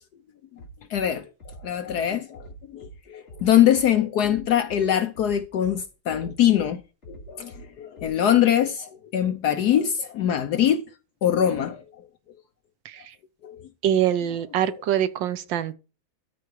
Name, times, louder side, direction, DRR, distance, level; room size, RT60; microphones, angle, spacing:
Bass drum, 0.6-1.1 1.4-2.0 2.3-2.9 3.3-3.9 4.2-4.8 5.1-5.8 6.1-6.7 7.0-7.6 8.0-8.1, right 2 dB, 35° left, 3.1 m, -43 dB
voice 1, 0.9-1.3 1.6-2.5 2.7-6.8 7.1-10.8 11.2-11.8 13.4-13.6, left 10 dB, 65° left, 1.0 m, -23 dB
voice 2, 13.8-15.7, right 10 dB, 70° right, 1.4 m, -24 dB
13.0 x 4.7 x 4.5 m
omnidirectional pair, 2.2 m